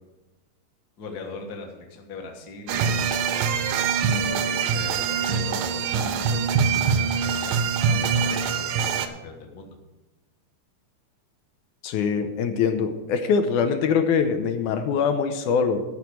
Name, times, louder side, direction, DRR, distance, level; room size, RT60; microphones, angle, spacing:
voice 1, 1.0-3.2 4.1-9.8, left 3 dB, 45° left, 3 dB, 1.4 m, -40 dB
sound 1, 2.7-9.1, right 6 dB, 80° right, 2.3 m, -24 dB
voice 2, 11.8-15.8, left 6 dB, 80° left, 7 dB, 2.2 m, -23 dB
13.5 x 5.3 x 7.7 m, 1.1 s
omnidirectional pair, 3.6 m